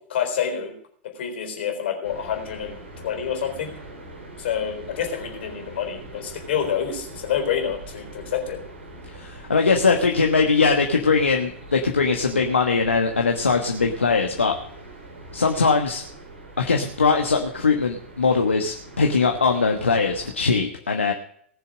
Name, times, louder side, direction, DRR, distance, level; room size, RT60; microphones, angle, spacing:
voice 1, 0.1-0.7 1.1-3.7 4.4-8.6, left 8 dB, 60° left, 4 dB, 3.9 m, -28 dB
sound 1, 2.0-20.3, right 2 dB, 70° right, 4.2 m, -42 dB
voice 2, 9.1-14.5 15.3-16.0 16.6-21.1, left 4 dB, 80° left, 3 dB, 1.4 m, -21 dB
19.0 x 7.0 x 6.3 m, 0.63 s
figure-of-eight pair, 90°, 7 cm